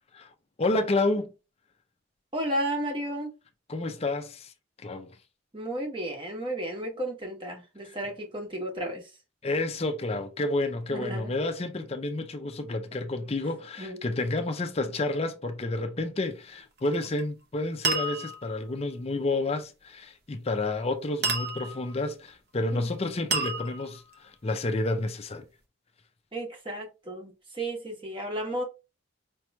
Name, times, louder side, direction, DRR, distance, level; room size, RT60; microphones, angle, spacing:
voice 1, 0.6-1.3 3.7-4.5 4.8-5.1 9.4-25.5, left 2 dB, 30° left, 0.4 m, -30 dB
voice 2, 2.3-3.3 5.5-9.1 10.9-11.3 13.8-14.0 22.7-22.9 26.3-28.6, right 1 dB, 25° right, 1.0 m, -33 dB
sound 1, 16.8-17.2 17.8-18.6 21.2-21.9 23.3-24.1, right 3 dB, 50° right, 0.7 m, -30 dB
5.2 x 3.0 x 2.2 m
head